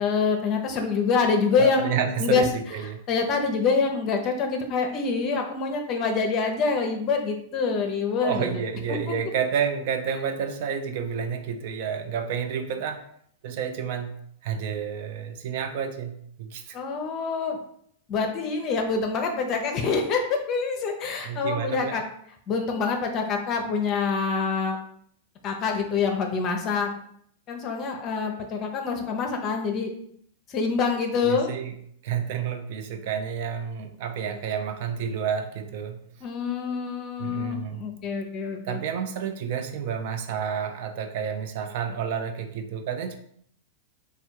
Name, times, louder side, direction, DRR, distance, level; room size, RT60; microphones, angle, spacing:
voice 1, 0.0-2.5 3.1-8.5 8.9-9.0 16.7-17.6 18.1-22.0 22.5-24.8 25.4-26.9 27.5-29.9 30.5-31.5 36.2-38.8, left 5 dB, 40° left, 4 dB, 0.6 m, -26 dB
voice 2, 1.6-3.0 8.2-13.0 13.4-14.1 14.4-16.8 21.3-22.0 31.2-31.7 32.0-36.0 37.2-37.8 38.6-43.1, right 7 dB, 60° right, 6 dB, 0.6 m, -30 dB
3.4 x 2.3 x 4.4 m, 0.67 s
hypercardioid pair, 115°, 0 cm